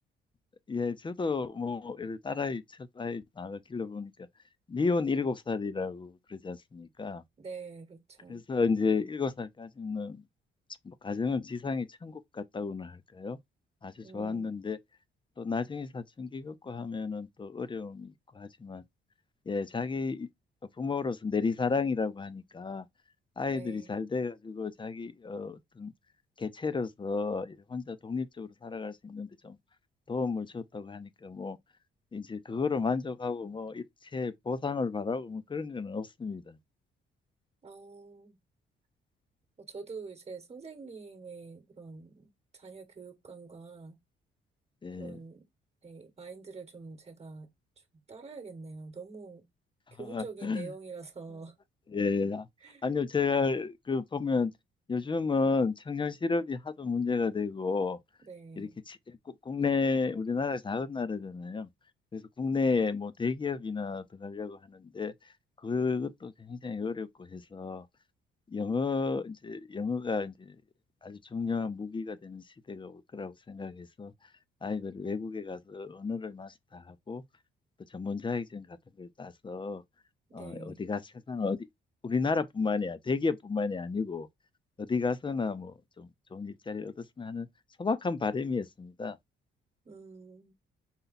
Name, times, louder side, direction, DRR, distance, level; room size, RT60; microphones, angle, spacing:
voice 1, 0.7-4.1 4.7-7.2 8.3-10.2 10.8-13.4 13.8-14.8 15.4-18.8 19.5-20.3 20.8-22.9 23.4-25.9 26.4-29.6 30.1-31.6 32.1-33.8 34.1-36.6 44.8-45.2 50.0-50.7 51.9-52.5 52.8-54.5 54.9-58.0 58.6-61.7 62.1-65.1 65.6-67.9 68.5-70.6 71.0-74.1 74.6-77.2 77.9-79.8 80.3-81.0 81.3-81.7 82.0-84.3 84.8-87.5 87.8-89.2, left 4 dB, 25° left, 0.6 m, -32 dB
voice 2, 7.4-8.4 14.0-14.6 23.5-23.9 37.6-38.4 39.6-44.0 44.9-45.5 45.8-47.5 47.9-49.4 49.9-51.5 52.6-52.9 58.2-58.8 80.3-80.9 89.8-90.5, right 4 dB, 30° right, 1.2 m, -46 dB
5.6 x 2.3 x 4.0 m
cardioid pair, 90°, 20 cm